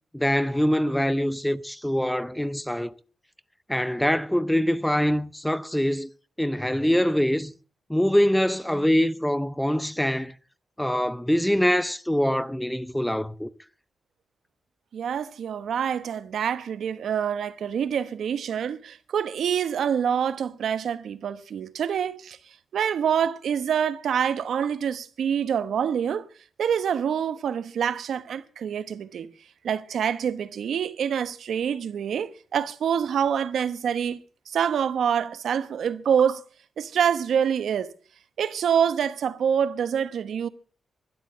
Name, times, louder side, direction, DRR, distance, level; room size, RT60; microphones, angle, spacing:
voice 1, 0.1-3.0 3.7-6.1 6.4-7.5 7.9-10.3 10.8-13.5, equal, 5° left, 0.6 m, -24 dB
voice 2, 14.9-22.4 22.7-26.2 26.6-29.3 29.6-34.2 34.5-36.4 36.8-37.9 38.4-40.5, right 8 dB, 80° right, 1.1 m, -26 dB
12.5 x 12.0 x 7.4 m
wide cardioid pair, 120°, 0 cm